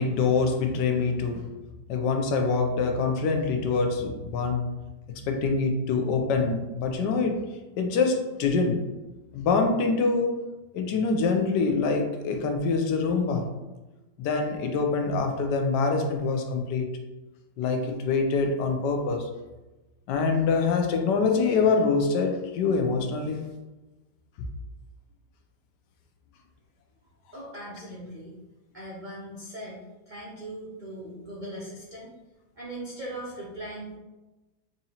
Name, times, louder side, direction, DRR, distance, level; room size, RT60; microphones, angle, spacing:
voice 1, 0.0-1.5 1.9-4.7 5.3-7.4 7.8-8.8 9.3-10.3 10.7-13.5 14.2-16.9 17.6-19.3 20.1-23.4, left 4 dB, 80° left, 4 dB, 1.2 m, -25 dB
voice 2, 27.3-28.4 28.7-29.8 30.1-32.1 32.6-34.0, right 1 dB, 90° right, -5 dB, 0.4 m, -39 dB
4.7 x 2.7 x 2.8 m, 1.1 s
omnidirectional pair, 1.9 m